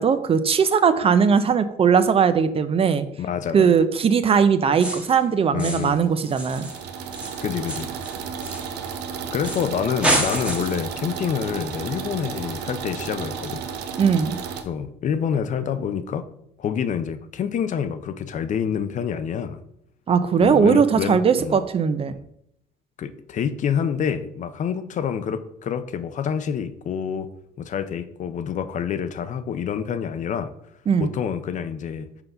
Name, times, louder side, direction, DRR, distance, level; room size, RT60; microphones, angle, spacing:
voice 1, 0.0-3.0 3.5-6.7 14.0-14.4 20.1-22.1 30.9-31.1, right 6 dB, 35° right, 0.5 m, -19 dB
voice 2, 3.2-3.8 5.5-6.0 7.4-7.9 9.3-13.6 14.6-16.3 16.6-19.6 20.4-21.6 22.1-22.2 23.0-27.3 27.6-30.5 31.0-32.1, left 7 dB, 45° left, 0.6 m, -27 dB
sound 1, 4.7-5.2 5.6-6.0 6.3-9.0 9.4-9.7 10.0-10.9, right 1 dB, 5° right, 1.2 m, -28 dB
sound 2, 6.1-14.6, right 6 dB, 90° right, 0.8 m, -33 dB
5.8 x 3.9 x 5.6 m
cardioid pair, 110°, 17 cm